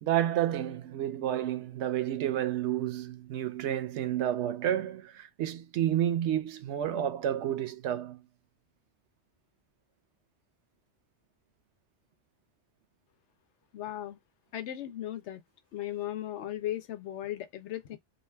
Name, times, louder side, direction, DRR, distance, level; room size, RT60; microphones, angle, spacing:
voice 1, 0.0-8.2, right 11 dB, 75° right, 0.9 m, -30 dB
voice 2, 13.7-14.2 14.5-15.4 15.7-18.0, left 12 dB, 80° left, 0.9 m, -36 dB
2.7 x 2.4 x 3.2 m
omnidirectional pair, 1.2 m